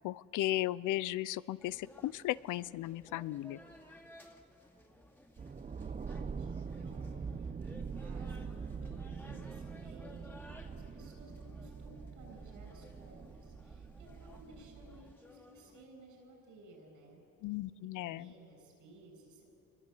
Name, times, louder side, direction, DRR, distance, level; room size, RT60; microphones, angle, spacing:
voice 1, 0.0-3.6 17.4-18.3, left 15 dB, 85° left, 19 dB, 0.6 m, -36 dB
sound 1, 1.6-15.9, left 1 dB, 5° left, 2.5 m, -58 dB
sound 2, 5.4-15.1, right 5 dB, 25° right, 0.7 m, -44 dB
voice 2, 5.8-17.2 17.8-19.4, right 2 dB, 90° right, 2 dB, 7.4 m, -57 dB
25.5 x 21.5 x 8.3 m, 2.6 s
cardioid pair, 90°, 30 cm